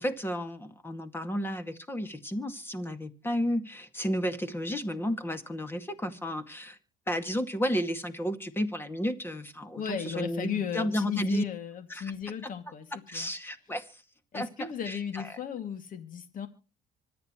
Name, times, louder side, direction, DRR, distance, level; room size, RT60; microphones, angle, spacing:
voice 1, 0.0-6.8 7.1-11.4 11.9-12.1 13.1-14.0 14.3-15.2, equal, 15° left, 9 dB, 2.2 m, -32 dB
voice 2, 9.8-13.3 14.3-16.5, left 8 dB, 55° left, 7 dB, 2.5 m, -35 dB
25.5 x 9.5 x 3.1 m, 0.34 s
cardioid pair, 110°, 17 cm